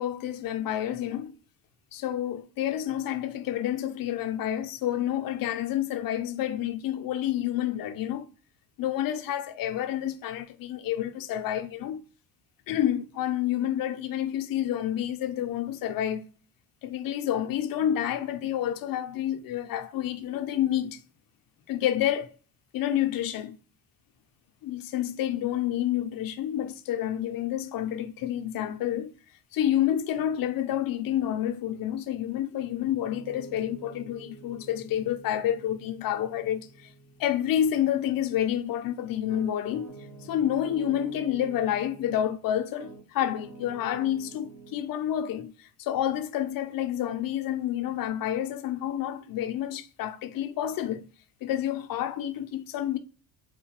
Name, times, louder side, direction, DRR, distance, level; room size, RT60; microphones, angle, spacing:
voice 1, 0.0-1.4 1.9-8.3 8.8-12.0 12.7-16.2 16.8-21.0 21.7-22.3 22.7-23.6 24.6-29.1 29.5-36.9 37.2-39.9 40.2-51.1 51.4-53.0, left 11 dB, 50° left, 0.5 m, -29 dB
Piano, 33.0-42.4 42.8-44.8, right 4 dB, 85° right, 1.8 m, -48 dB
3.9 x 2.2 x 2.8 m
cardioid pair, 100°, 46 cm